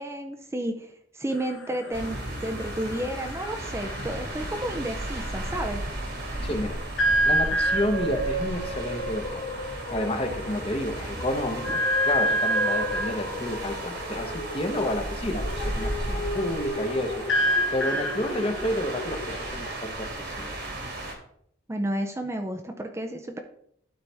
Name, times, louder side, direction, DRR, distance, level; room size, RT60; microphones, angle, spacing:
voice 1, 0.0-5.8 21.7-23.4, right 1 dB, 15° right, 4 dB, 0.5 m, -32 dB
sound 1, 1.3-5.7 7.0-8.2 9.4-9.5 9.8-10.0 10.4-10.5 11.6-13.3 15.4-19.5, right 1 dB, 90° left, 1.2 m, -28 dB
sound 2, 1.9-21.1, right 1 dB, 60° right, 1.7 m, -35 dB
voice 2, 6.4-6.8 7.2-9.6 9.9-17.2 17.7-20.5, left 1 dB, 30° left, 4 dB, 1.0 m, -30 dB
sound 3, 7.4-19.1, left 1 dB, 50° left, 1.5 m, -35 dB
12.0 x 4.1 x 3.4 m, 0.68 s
head